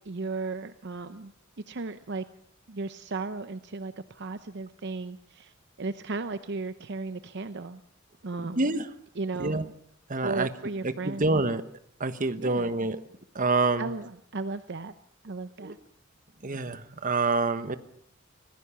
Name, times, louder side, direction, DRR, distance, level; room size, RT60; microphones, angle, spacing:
voice 1, 0.1-1.3 1.7-2.2 2.7-5.5 5.8-7.8 8.2-8.8 9.2-9.7 10.2-11.3 12.4-12.7 13.8-14.9 15.2-15.8, right 3 dB, 60° right, 11 dB, 0.8 m, -35 dB
voice 2, 8.4-8.9 9.4-9.6 10.1-10.5 10.8-11.6 12.0-13.0 13.3-13.9 15.6-15.7 16.4-17.8, right 3 dB, 40° right, 11 dB, 1.2 m, -27 dB
25.5 x 16.5 x 7.1 m, 0.67 s
head